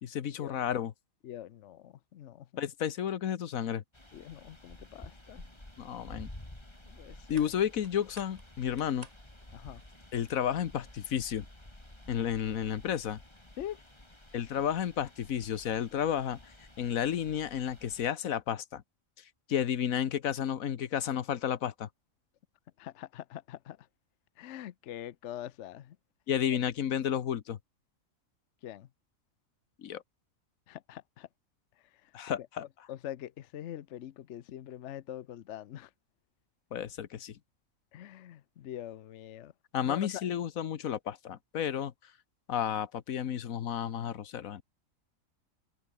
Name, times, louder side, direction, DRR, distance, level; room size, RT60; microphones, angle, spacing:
voice 1, 0.0-0.9 2.6-3.8 5.8-6.3 7.3-9.1 10.1-11.5 12.1-13.2 14.3-16.4 16.8-18.8 19.5-21.9 26.3-27.6 29.8-30.0 32.1-32.6 36.7-37.4 39.7-41.9 42.5-44.6, left 9 dB, 85° left, 1.4 m, -32 dB
voice 2, 1.2-2.5 4.1-5.4 6.9-7.5 9.5-9.8 13.6-13.8 22.8-23.8 24.4-26.0 28.6-28.9 30.7-31.3 32.4-35.9 37.9-39.5 39.8-40.2, left 11 dB, 65° left, 1.0 m, -44 dB
sound 1, 3.9-18.1, left 1 dB, 20° left, 3.7 m, -52 dB
sound 2, 6.4-11.6, right 2 dB, 30° right, 2.2 m, -58 dB
omnidirectional pair, 1.4 m